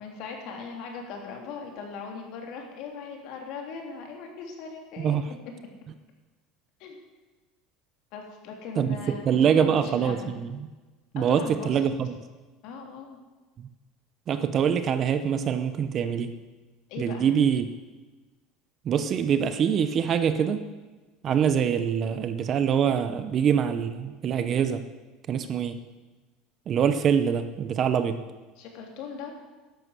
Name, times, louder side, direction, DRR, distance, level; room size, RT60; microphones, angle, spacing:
voice 1, 0.0-5.2 6.8-7.0 8.1-9.4 9.8-10.4 11.1-11.8 12.6-13.2 16.9-17.3 28.6-29.3, left 5 dB, 50° left, 2 dB, 3.3 m, -39 dB
voice 2, 5.0-5.3 8.8-10.7 11.1-12.1 13.6-13.7 14.3-16.4 17.0-17.7 18.8-20.7 21.2-24.9 25.3-25.8 26.7-28.2, right 8 dB, 30° right, 11 dB, 0.7 m, -24 dB
13.0 x 11.0 x 8.1 m, 1.2 s
cardioid pair, 175°, 0 cm